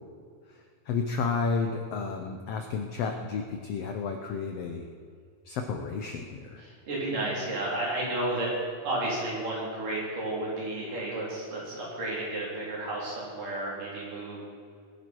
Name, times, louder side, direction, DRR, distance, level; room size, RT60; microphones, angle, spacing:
voice 1, 0.9-4.9 5.5-6.6, left 5 dB, 90° left, 4 dB, 1.3 m, -31 dB
voice 2, 6.6-8.5 8.8-14.4, right 2 dB, 70° right, -5 dB, 5.4 m, -32 dB
20.0 x 10.5 x 4.6 m, 2.1 s
omnidirectional pair, 3.9 m